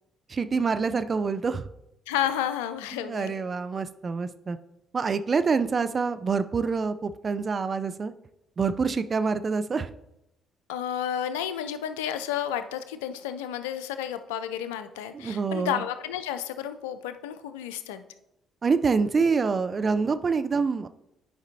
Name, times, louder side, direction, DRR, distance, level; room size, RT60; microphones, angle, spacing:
voice 1, 0.3-1.6 2.9-4.6 4.9-8.1 8.6-9.9 15.1-15.8 18.6-20.9, right 5 dB, 40° right, 12 dB, 0.4 m, -26 dB
voice 2, 2.1-3.3 10.7-18.0, left 10 dB, 85° left, 11 dB, 0.4 m, -31 dB
10.0 x 5.1 x 2.7 m, 0.88 s
hypercardioid pair, 50°, 0 cm